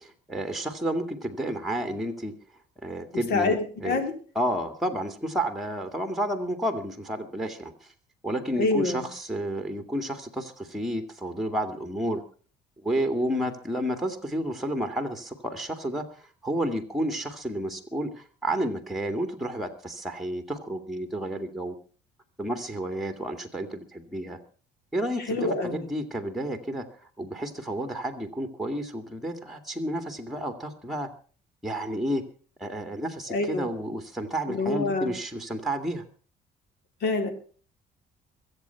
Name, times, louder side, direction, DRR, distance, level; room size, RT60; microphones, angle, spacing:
voice 1, 0.0-2.3 2.8-4.0 4.4-7.9 8.2-12.2 12.8-21.7 22.4-24.4 24.9-26.8 27.2-31.1 31.6-32.2 32.6-36.0, right 1 dB, ahead, 7 dB, 2.2 m, -31 dB
voice 2, 3.3-4.1 8.6-9.1 25.2-25.9 33.3-33.7 34.5-35.2 37.0-37.3, left 3 dB, 75° left, 6 dB, 4.0 m, -26 dB
23.0 x 8.2 x 5.8 m, 0.42 s
cardioid pair, 110°, 17 cm